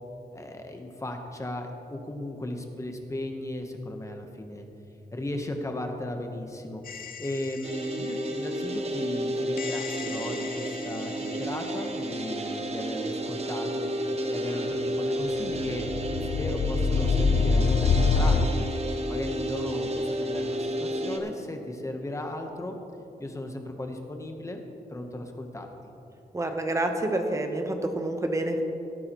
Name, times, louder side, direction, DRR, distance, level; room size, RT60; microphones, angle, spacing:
voice 1, 0.3-4.7 5.1-15.9 16.2-18.7 19.0-22.8 23.2-25.7, left 1 dB, 20° left, 4 dB, 0.9 m, -36 dB
sound 1, 6.9-8.0 9.6-11.4 15.3-18.5, left 4 dB, 65° left, 0.4 m, -26 dB
sound 2, 7.6-21.2, right 1 dB, 40° right, 0.8 m, -31 dB
voice 2, 26.3-28.6, right 1 dB, 20° right, 4 dB, 0.9 m, -28 dB
17.5 x 8.7 x 3.0 m, 2.8 s
wide cardioid pair, 155°, 16 cm